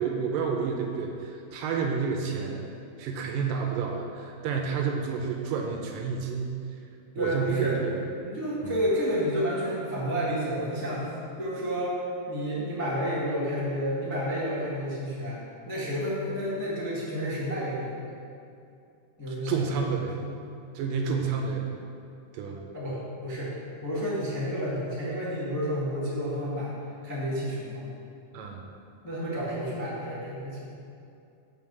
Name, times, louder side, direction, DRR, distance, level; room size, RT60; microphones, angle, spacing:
voice 1, 0.0-2.6 3.0-6.5 7.2-7.9 8.6-8.7 19.3-20.2 20.8-21.7 22.3-22.6 28.3-28.6, right 6 dB, 80° right, 2 dB, 2.2 m, -30 dB
voice 2, 7.1-7.8 8.2-11.1 11.4-12.0 12.3-18.2 19.2-20.3 22.7-23.5 23.8-26.7 27.0-27.9 29.0-30.6, equal, 15° left, -9 dB, 0.6 m, -30 dB
7.8 x 4.9 x 7.0 m, 2.6 s
omnidirectional pair, 4.2 m